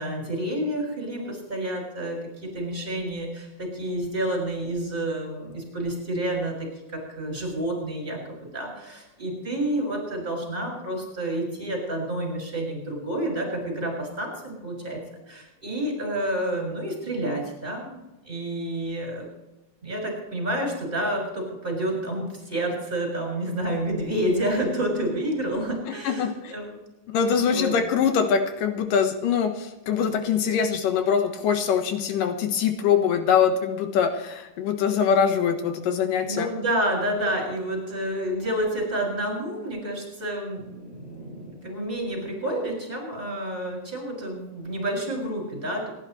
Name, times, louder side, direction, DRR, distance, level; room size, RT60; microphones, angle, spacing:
voice 1, 0.0-15.0 15.3-19.3 19.8-26.8 27.5-27.7 36.2-45.9, right 1 dB, 15° right, 0 dB, 6.8 m, -29 dB
voice 2, 26.0-26.5 27.1-36.5, left 7 dB, 85° left, 6 dB, 3.0 m, -23 dB
26.5 x 11.5 x 3.2 m, 0.98 s
omnidirectional pair, 3.8 m